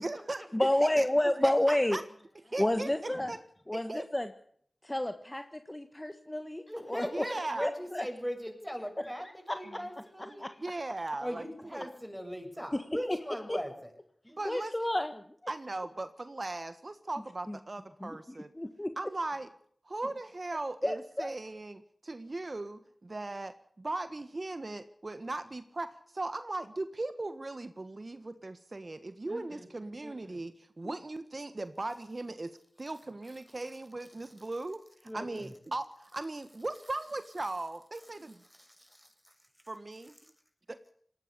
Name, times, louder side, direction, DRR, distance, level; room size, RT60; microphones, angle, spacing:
voice 1, 0.0-1.1 1.4-2.0 2.5-3.4 3.7-4.1 7.1-7.7 10.3-11.4 11.7-11.9 14.4-14.7 15.5-18.5 19.0-19.5 19.8-38.4 39.7-40.1, right 2 dB, 45° right, 11 dB, 1.5 m, -38 dB
voice 2, 0.5-2.0 2.6-3.3 3.7-4.3 4.8-7.3 7.6-8.1 9.0-9.1 9.5-9.8 10.4-10.6 12.7-12.8 13.5-13.6 14.5-15.2 17.5-17.6 18.0-18.9 20.8-21.3 30.8-30.9, left 1 dB, 20° left, 8 dB, 1.6 m, -30 dB
voice 3, 6.7-10.4 11.2-13.7 14.2-14.4 20.0-20.1 29.3-29.7 30.0-30.4 35.1-35.5 38.6-39.3, equal, ahead, 5 dB, 7.2 m, -40 dB
19.5 x 17.5 x 8.4 m, 0.63 s
cardioid pair, 45°, 0 cm